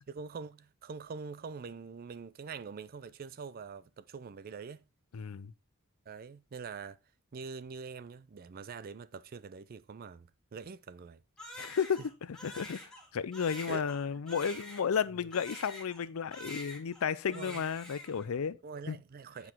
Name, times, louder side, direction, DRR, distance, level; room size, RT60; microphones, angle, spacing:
voice 1, 0.1-4.9 6.1-7.0 7.3-11.2 13.7-13.9 15.1-15.3 17.3-17.6 18.6-19.5, right 5 dB, 45° right, 0.4 m, -44 dB
voice 2, 5.1-5.5 11.6-12.0 12.3-12.8 13.1-18.6 18.9-19.0, left 7 dB, 75° left, 0.5 m, -33 dB
Crying sobbing, 11.4-16.1 16.3-17.1 17.3-18.3, left 1 dB, 5° left, 1.7 m, -47 dB
7.9 x 4.7 x 3.5 m
head